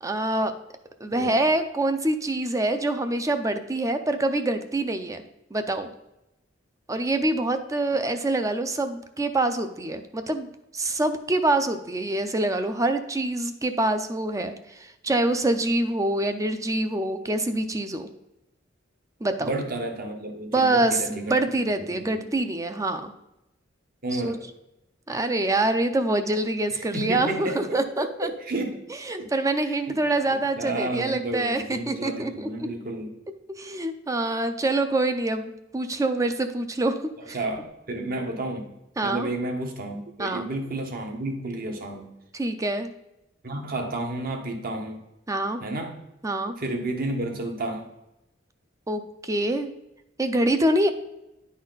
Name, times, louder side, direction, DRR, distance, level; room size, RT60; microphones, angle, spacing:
voice 1, 0.0-0.5 1.0-5.2 5.5-5.9 6.9-10.5 10.7-14.5 15.0-18.1 19.2-19.6 20.5-23.1 24.1-24.4 25.1-28.3 29.0-32.7 33.6-36.9 37.3-37.4 39.0-39.3 40.2-40.5 42.3-42.9 45.3-45.6 46.2-46.5 48.9-49.7 50.2-50.9, right 2 dB, 15° right, 8 dB, 0.5 m, -25 dB
voice 2, 19.4-21.4 21.8-22.2 24.0-24.5 26.7-27.6 28.0-28.8 29.2-29.3 29.9-30.0 30.3-33.1 37.3-38.7 39.0-42.1 43.4-45.0 45.6-46.0 46.6-47.9, right 2 dB, 50° right, 3 dB, 1.2 m, -31 dB
10.5 x 4.2 x 4.0 m, 0.89 s
head